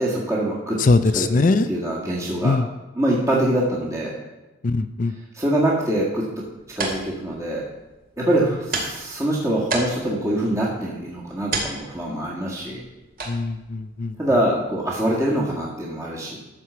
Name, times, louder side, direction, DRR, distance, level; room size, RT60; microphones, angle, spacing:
voice 1, 0.0-0.8 1.1-2.6 2.9-4.1 5.3-6.2 6.7-7.6 8.2-12.8 14.2-16.4, right 1 dB, 15° right, -5 dB, 1.8 m, -24 dB
voice 2, 0.8-1.7 2.4-2.7 4.6-5.1 13.3-14.1, left 3 dB, 40° left, 11 dB, 0.4 m, -20 dB
sound 1, 6.3-15.6, right 2 dB, 45° right, 2.2 m, -34 dB
13.5 x 4.8 x 6.9 m, 1.1 s
head